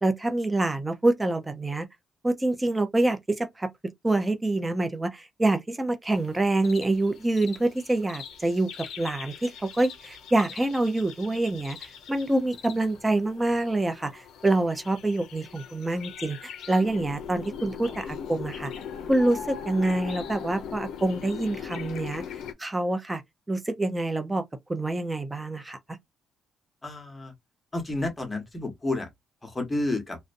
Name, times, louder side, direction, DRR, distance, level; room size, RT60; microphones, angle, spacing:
voice 1, 0.0-1.9 2.2-3.7 4.0-18.7 19.1-22.2 22.6-23.2 23.5-24.4 24.7-25.8, right 2 dB, 15° right, 0.5 m, -26 dB
sound 1, 6.1-22.5, left 7 dB, 80° left, 0.4 m, -41 dB
voice 2, 26.8-27.3 27.7-29.1 29.4-30.2, left 2 dB, 20° left, 1.0 m, -30 dB
2.5 x 2.1 x 2.5 m
cardioid pair, 90°, 0 cm